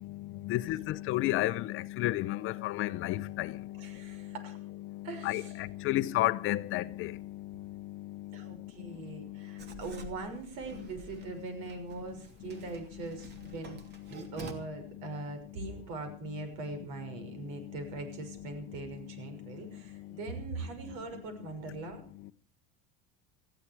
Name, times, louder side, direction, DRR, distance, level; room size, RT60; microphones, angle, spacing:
voice 1, 0.4-3.6 5.2-7.2, left 16 dB, 45° left, 0.7 m, -31 dB
voice 2, 3.7-4.6 5.0-5.6 8.3-13.8 14.3-22.0, right 3 dB, 70° right, 6.1 m, -41 dB
Writing, 9.6-14.5, right 3 dB, 35° right, 2.7 m, -49 dB
19.5 x 15.0 x 4.7 m
cardioid pair, 155°, 29 cm